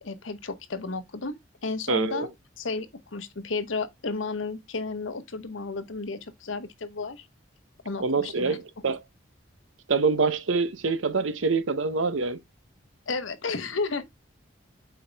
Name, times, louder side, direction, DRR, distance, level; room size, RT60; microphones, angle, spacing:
voice 1, 0.0-2.3 2.6-7.3 7.8-8.6 13.1-14.0, left 3 dB, 90° left, 1.0 m, -33 dB
voice 2, 1.9-2.3 8.0-9.0 9.9-12.4, right 4 dB, 90° right, 0.8 m, -25 dB
7.7 x 4.7 x 3.4 m
head